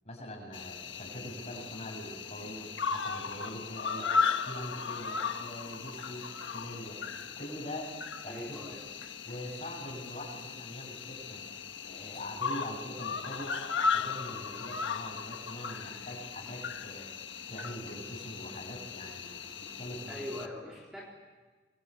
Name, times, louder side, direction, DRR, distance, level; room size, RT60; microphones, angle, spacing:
voice 1, 0.0-4.1 4.5-7.0 7.4-7.9 8.2-8.6 9.2-11.4 11.8-13.6 13.9-20.2, equal, 35° left, 1 dB, 7.0 m, -43 dB
Cricket, 0.5-20.5, left 5 dB, 90° left, 1.5 m, -36 dB
voice 2, 4.0-4.4 8.3-8.9 20.1-21.0, left 1 dB, 5° right, -4 dB, 3.9 m, -43 dB
25.0 x 23.0 x 8.3 m, 1.3 s
head